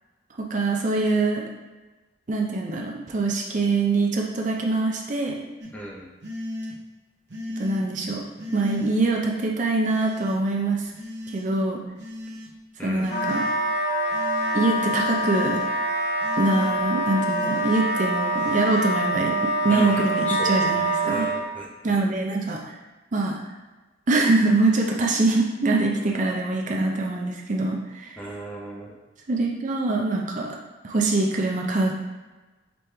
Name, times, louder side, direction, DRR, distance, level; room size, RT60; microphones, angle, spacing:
voice 1, 0.4-1.5 2.3-5.4 7.6-8.2 8.5-10.8 11.3-11.8 12.8-13.5 14.5-15.6 16.4-21.3 21.8-22.7 23.1-23.4 24.1-28.2 29.3-30.6 30.8-31.9, right 3 dB, 40° right, 0 dB, 0.5 m, -24 dB
sound 1, 5.6-5.7 6.2-6.8 7.3-7.8 8.4-8.9 9.9-10.4 10.9-11.5 12.0-12.5 13.0-13.5 14.1-14.6 15.1-15.7 16.2-16.7 17.3-17.8 18.4-18.9, left 1 dB, 65° right, 0.8 m, -36 dB
voice 2, 5.7-6.0 12.8-13.1 19.7-20.7 21.0-22.0 28.2-28.9, equal, 10° left, -3 dB, 0.7 m, -35 dB
Wind instrument woodwind instrument, 13.1-21.4, right 1 dB, 45° left, 1.3 m, -25 dB
5.3 x 3.0 x 3.2 m, 1.2 s
head